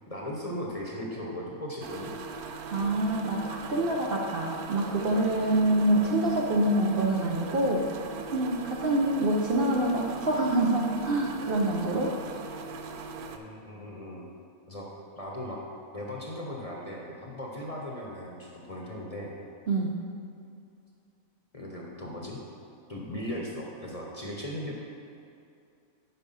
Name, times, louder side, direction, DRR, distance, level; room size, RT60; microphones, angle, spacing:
voice 1, 0.1-2.1 13.3-14.3 14.7-14.9 15.2-15.6 15.9-19.3 21.5-22.4 22.9-24.8, left 1 dB, 30° left, -2 dB, 0.9 m, -37 dB
sound 1, 1.8-13.4, right 4 dB, 90° right, 1.1 m, -40 dB
voice 2, 2.7-7.9 8.3-12.1 19.7-19.9, right 1 dB, 50° right, -1 dB, 0.8 m, -26 dB
10.0 x 4.9 x 5.6 m, 2.5 s
omnidirectional pair, 1.5 m